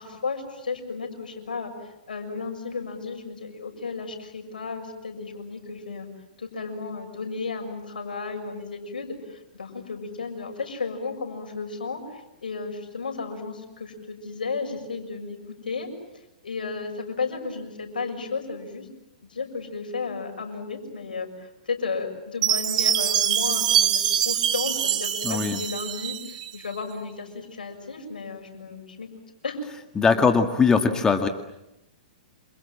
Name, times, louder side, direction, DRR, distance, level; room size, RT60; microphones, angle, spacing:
voice 1, 0.0-6.1 6.4-15.9 16.4-18.9 19.3-29.1 29.4-29.6, left 4 dB, 80° left, 4 dB, 6.7 m, -33 dB
Chime, 22.4-26.5, right 10 dB, 55° right, 4.0 m, -24 dB
voice 2, 25.2-25.6 30.0-31.3, left 5 dB, 15° left, 6 dB, 1.9 m, -20 dB
28.5 x 27.0 x 7.5 m, 0.87 s
hypercardioid pair, 120°, 5 cm